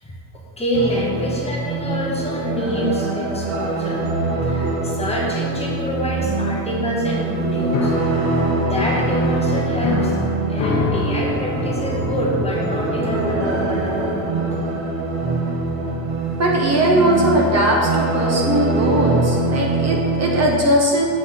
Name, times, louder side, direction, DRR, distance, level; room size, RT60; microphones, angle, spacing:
voice 1, 0.0-4.1 4.4-7.9 8.7-10.2 10.5-14.2, equal, 15° left, -3 dB, 1.0 m, -27 dB
sound 1, 0.7-20.5, right 2 dB, 75° right, 1.6 m, -23 dB
Piano, 7.7-14.5, left 3 dB, 40° left, 0.9 m, -26 dB
voice 2, 16.4-21.0, right 1 dB, 35° right, -1 dB, 0.9 m, -19 dB
7.5 x 5.8 x 5.7 m, 2.1 s
cardioid pair, 175°, 48 cm